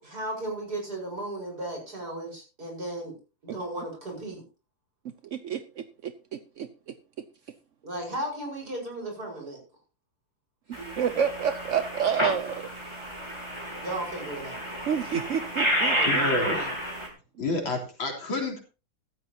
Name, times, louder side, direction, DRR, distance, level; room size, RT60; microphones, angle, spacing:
voice 1, 0.0-3.1 3.4-4.4 7.8-9.6 10.7-11.1 13.8-14.7 15.9-16.7, right 1 dB, 50° right, 0 dB, 6.0 m, -35 dB
voice 2, 5.3-6.9 11.0-12.7 14.9-16.2, right 7 dB, 65° right, 11 dB, 0.7 m, -29 dB
sound 1, 10.7-17.1, equal, 15° right, 4.3 m, -30 dB
voice 3, 16.1-16.6 17.4-18.6, left 2 dB, 80° left, 1 dB, 4.2 m, -29 dB
15.5 x 13.0 x 2.9 m, 0.32 s
omnidirectional pair, 2.1 m